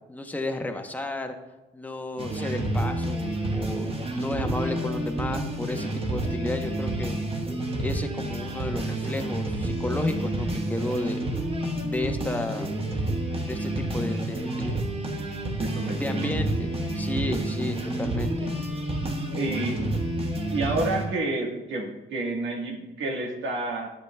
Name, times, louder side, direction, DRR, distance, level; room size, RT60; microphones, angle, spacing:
voice 1, 0.1-1.4 1.7-7.2 7.8-11.2 11.8-12.7 13.4-14.8 15.9-18.5, left 1 dB, 10° left, 5 dB, 0.8 m, -32 dB
sound 1, 2.2-21.1, right 1 dB, 30° right, 1.5 m, -29 dB
voice 2, 15.6-16.3 19.3-19.9 20.5-23.9, right 2 dB, 75° right, 0 dB, 1.5 m, -29 dB
10.0 x 8.0 x 2.2 m, 1.1 s
cardioid pair, 90°, 20 cm